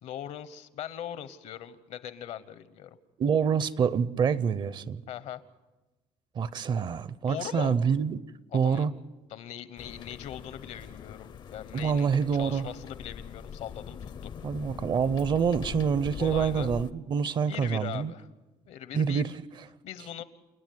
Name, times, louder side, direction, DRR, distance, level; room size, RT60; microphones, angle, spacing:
voice 1, 0.0-2.9 5.1-5.4 7.3-7.7 8.6-8.9 9.3-12.1 12.4-14.3 16.2-16.7 17.5-18.3 18.7-19.2 19.8-20.2, left 10 dB, 70° left, 14 dB, 1.1 m, -40 dB
voice 2, 3.2-5.0 6.3-8.2 8.5-8.9 11.7-12.7 14.4-18.1 18.9-19.3, right 6 dB, 40° right, 18 dB, 0.6 m, -26 dB
sound 1, 9.8-16.9, left 7 dB, 40° left, 0.6 m, -42 dB
28.5 x 10.0 x 9.4 m, 1.1 s
cardioid pair, 150°, 12 cm